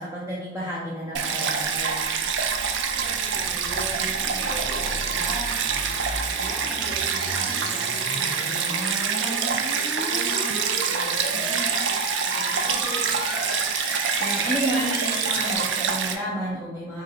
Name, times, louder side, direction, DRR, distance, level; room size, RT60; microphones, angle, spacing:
voice 1, 0.0-2.0 14.2-17.0, right 1 dB, 15° right, -7 dB, 0.5 m, -30 dB
Stream, 1.1-16.1, right 6 dB, 75° right, 0.4 m, -26 dB
sound 1, 1.9-15.6, left 2 dB, 55° left, 0.6 m, -35 dB
voice 2, 2.6-5.6 6.3-11.9 12.2-13.0, right 1 dB, 40° right, -5 dB, 1.0 m, -39 dB
3.7 x 2.1 x 3.8 m, 1.2 s
head